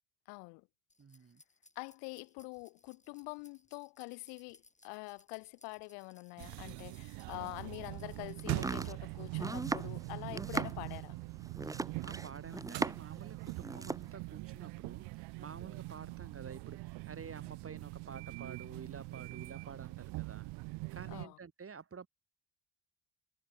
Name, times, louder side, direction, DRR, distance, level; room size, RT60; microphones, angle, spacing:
voice 1, 0.3-0.7 1.7-11.2 21.1-21.4, left 33 dB, 90° left, 1.2 m, -46 dB
sound 1, 0.9-8.9, left 3 dB, 20° left, 4.8 m, -65 dB
voice 2, 1.0-1.4 11.6-20.5 20.9-22.1, right 6 dB, 35° right, 6.9 m, -50 dB
sound 2, 6.4-21.3, right 24 dB, 80° right, 0.9 m, -43 dB
Domestic sounds home sounds, 8.4-13.2 13.5-14.1, right 2 dB, 10° right, 0.7 m, -38 dB
supercardioid pair, 80°, 39 cm